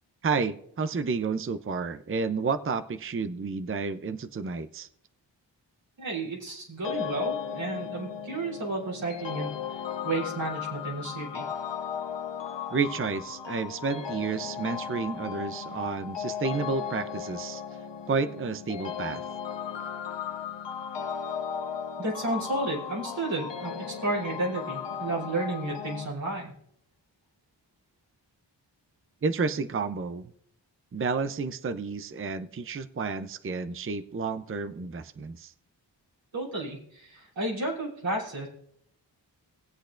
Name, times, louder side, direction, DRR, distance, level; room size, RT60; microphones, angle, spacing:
voice 1, 0.2-4.9 12.7-17.6 18.1-19.2 29.2-30.3 30.9-35.5, right 4 dB, 30° right, 11 dB, 0.6 m, -31 dB
voice 2, 6.0-11.5 22.0-26.5 36.3-38.5, right 2 dB, 85° right, -5 dB, 3.6 m, -32 dB
sound 1, 6.8-26.1, left 7 dB, 70° left, 1.1 m, -36 dB
19.5 x 8.1 x 2.5 m, 0.70 s
cardioid pair, 40°, 44 cm